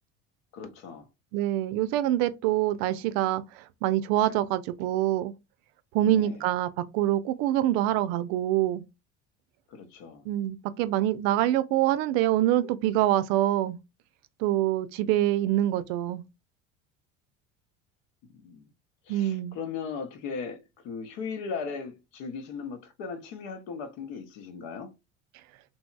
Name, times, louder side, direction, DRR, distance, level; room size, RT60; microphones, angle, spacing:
voice 1, 0.5-1.0 6.0-6.4 9.7-10.3 18.4-18.7 19.1-24.9, left 5 dB, 70° left, 0.9 m, -38 dB
voice 2, 1.3-3.4 3.8-5.3 5.9-8.9 10.3-13.8 14.4-16.2 19.1-19.6, right 13 dB, 65° right, 0.5 m, -25 dB
2.8 x 2.7 x 2.2 m
hypercardioid pair, 75°, 38 cm